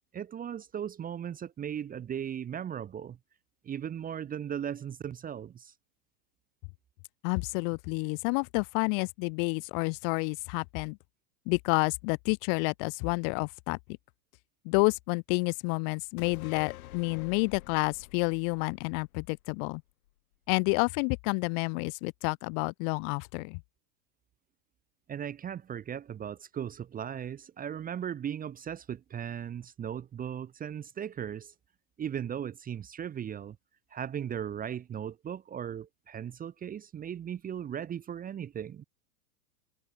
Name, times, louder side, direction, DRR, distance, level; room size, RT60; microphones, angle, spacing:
voice 1, 0.1-3.2 3.6-5.7 25.1-31.5 32.0-33.6 33.9-38.8, right 9 dB, 20° right, 1.0 m, -37 dB
voice 2, 7.2-11.0 11.5-13.8 14.6-19.8 20.5-23.6, left 40 dB or more, 40° left, 0.5 m, -29 dB
sound 1, 16.2-19.8 20.1-20.2, left 16 dB, 70° left, 3.2 m, -47 dB
hypercardioid pair, 125°, 45 cm